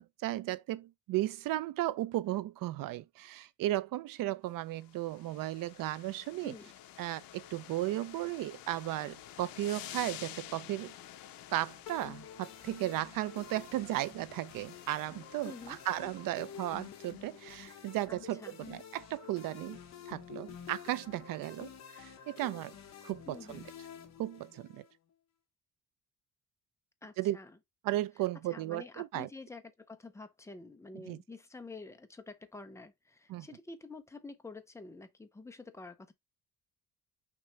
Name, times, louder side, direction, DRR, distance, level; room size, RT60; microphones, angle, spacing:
voice 1, 0.0-6.6 7.0-10.9 11.5-19.8 20.1-22.7 23.0-23.6 24.2-24.8 27.2-27.4 27.8-29.3 30.9-31.2 33.3-33.5, right 15 dB, 70° right, 0.5 m, -35 dB
sound 1, 4.7-17.9, left 12 dB, 80° left, 0.6 m, -51 dB
sound 2, 11.9-24.9, left 8 dB, 50° left, 1.0 m, -50 dB
voice 2, 15.4-15.8 18.1-18.6 23.3-23.7 27.0-27.5 28.5-36.1, left 3 dB, 10° left, 0.4 m, -48 dB
6.0 x 2.8 x 3.1 m
cardioid pair, 170°, 35 cm